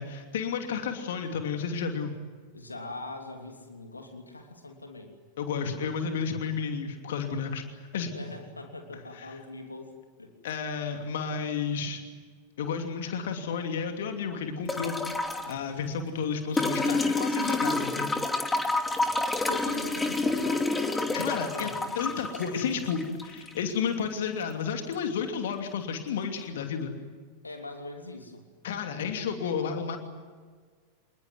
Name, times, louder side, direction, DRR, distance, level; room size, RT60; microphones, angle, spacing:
voice 1, 0.0-2.1 5.4-8.1 9.1-9.3 10.4-12.0 12.6-15.0 15.4-18.1 21.1-21.7 22.0-26.9 28.6-30.0, left 6 dB, 60° left, 5 dB, 2.8 m, -32 dB
voice 2, 2.5-5.2 8.1-9.9 10.2-10.3 17.4-17.8 18.9-19.0 19.5-22.2 27.4-28.5, left 2 dB, 80° left, 4 dB, 3.0 m, -42 dB
sound 1, 14.7-15.5 16.6-23.6 24.9-25.0, left 2 dB, 10° left, 2.7 m, -28 dB
28.0 x 20.5 x 9.5 m, 1.5 s
figure-of-eight pair, 90°, 0 cm